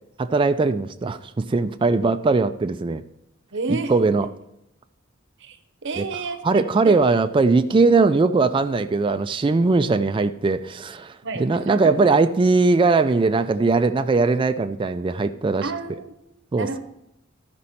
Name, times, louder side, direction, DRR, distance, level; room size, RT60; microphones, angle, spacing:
voice 1, 0.2-3.0 3.7-4.3 6.0-6.1 6.4-11.1 11.4-15.7 16.5-16.7, right 3 dB, 25° right, 8 dB, 0.3 m, -20 dB
voice 2, 3.5-4.1 5.4-5.6 5.8-6.9 11.2-12.1 13.1-13.5 15.6-16.2 16.5-16.8, right 3 dB, 60° right, 10 dB, 0.8 m, -31 dB
13.0 x 5.2 x 4.2 m, 0.82 s
head